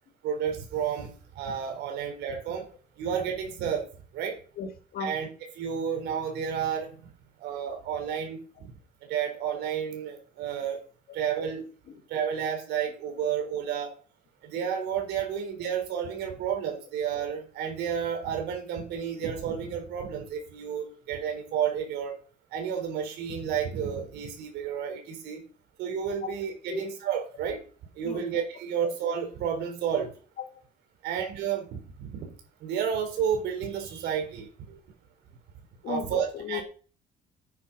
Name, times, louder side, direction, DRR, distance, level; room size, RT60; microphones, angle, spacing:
voice 1, 0.2-2.7 3.0-3.9 4.1-4.4 5.0-7.1 7.4-8.7 9.1-10.8 11.1-11.6 12.1-13.9 14.4-22.1 22.5-25.4 25.8-27.6 28.0-30.1 31.0-32.3 32.6-34.8 35.9-36.6, right 8 dB, 85° right, 4 dB, 4.2 m, -31 dB
voice 2, 4.6-5.1 26.2-26.4 26.7-26.9 28.0-28.2 35.8-36.6, left 6 dB, 65° left, 7 dB, 2.4 m, -35 dB
9.6 x 9.1 x 5.6 m, 0.40 s
cardioid pair, 110°, 17 cm